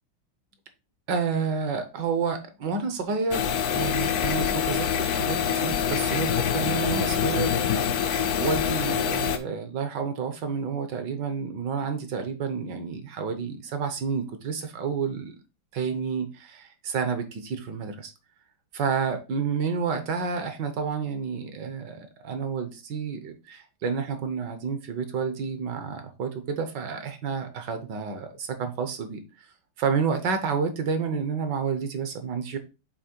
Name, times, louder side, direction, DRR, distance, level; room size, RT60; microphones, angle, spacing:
voice 1, 1.1-7.5 8.2-15.4 15.7-18.1 18.7-29.2 29.8-32.6, right 5 dB, 65° right, 1.5 m, -30 dB
sound 1, 3.3-9.4, left 8 dB, 65° left, 1.0 m, -25 dB
7.5 x 3.1 x 4.4 m
omnidirectional pair, 2.3 m